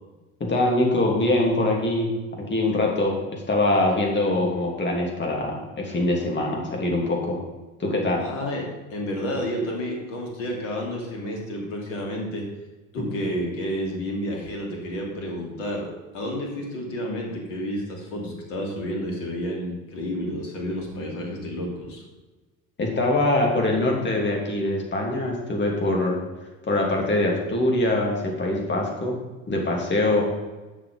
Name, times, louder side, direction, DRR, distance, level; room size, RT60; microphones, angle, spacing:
voice 1, 0.4-7.4 7.8-8.2 13.0-13.1 22.8-26.2 26.7-29.2 29.5-30.2, left 2 dB, 25° left, 0 dB, 3.0 m, -23 dB
voice 2, 8.2-8.6 8.9-12.5 12.9-22.0, equal, 65° left, -1 dB, 3.0 m, -30 dB
10.5 x 7.0 x 5.4 m, 1.2 s
figure-of-eight pair, 65°, 41 cm